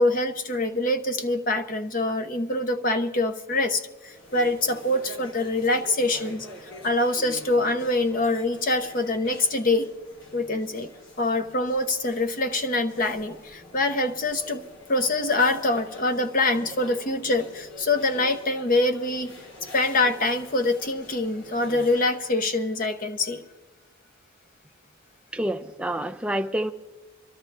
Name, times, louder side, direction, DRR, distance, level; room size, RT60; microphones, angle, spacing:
voice 1, 0.0-6.5 6.8-9.9 10.3-10.9 11.2-14.6 14.9-19.3 19.6-23.4, left 2 dB, 40° left, 7 dB, 0.8 m, -25 dB
sound 1, 3.9-22.4, left 1 dB, 60° left, 2.0 m, -46 dB
voice 2, 25.3-26.7, right 1 dB, 5° right, 7 dB, 0.4 m, -28 dB
24.0 x 13.0 x 3.3 m, 1.1 s
head